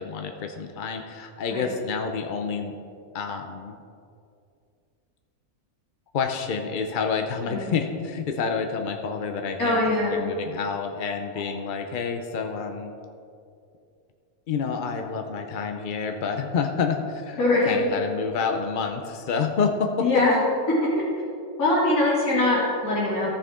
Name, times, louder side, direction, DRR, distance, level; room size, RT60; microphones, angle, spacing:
voice 1, 0.0-2.7 3.1-3.8 6.1-9.8 10.1-12.9 14.5-17.4 17.7-20.1, left 5 dB, 60° left, 5 dB, 0.5 m, -28 dB
voice 2, 9.6-10.2 11.3-11.4 17.4-17.9 20.0-20.3 20.7-20.8 21.6-23.3, left 2 dB, 80° left, -8 dB, 2.9 m, -22 dB
14.0 x 6.3 x 3.6 m, 2.5 s
omnidirectional pair, 1.5 m